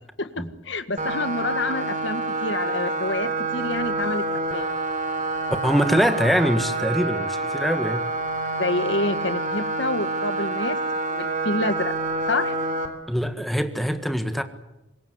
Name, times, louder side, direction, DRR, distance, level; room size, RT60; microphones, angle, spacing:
voice 1, 0.2-4.7 8.5-10.8 11.1-11.9 12.3-12.5, left 2 dB, 75° left, 11 dB, 1.8 m, -28 dB
sound 1, 1.0-12.9, right 2 dB, 40° right, 3.5 m, -27 dB
voice 2, 5.6-8.1 13.1-14.4, equal, ahead, 9 dB, 1.7 m, -23 dB
25.5 x 21.5 x 8.2 m, 0.96 s
head